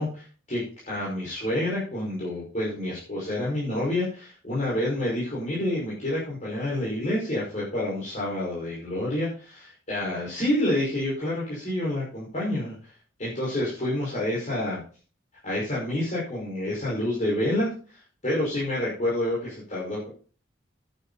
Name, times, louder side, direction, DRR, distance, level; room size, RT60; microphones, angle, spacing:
voice 1, 0.0-12.7 13.2-14.8 15.4-20.1, left 1 dB, 40° left, -7 dB, 5.7 m, -28 dB
11.0 x 10.5 x 4.3 m, 0.39 s
head